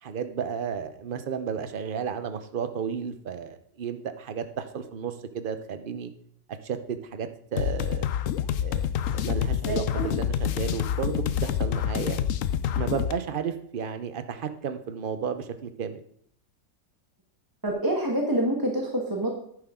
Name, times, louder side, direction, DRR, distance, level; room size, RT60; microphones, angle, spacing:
voice 1, 0.0-6.1 6.6-8.1 8.6-12.2 12.7-16.0, right 7 dB, 45° right, 10 dB, 0.7 m, -33 dB
sound 1, 7.6-13.1, left 10 dB, 65° left, 0.8 m, -27 dB
voice 2, 9.7-10.0 17.6-19.3, right 1 dB, 15° right, 0 dB, 1.3 m, -26 dB
11.0 x 9.6 x 3.7 m, 0.67 s
omnidirectional pair, 1.9 m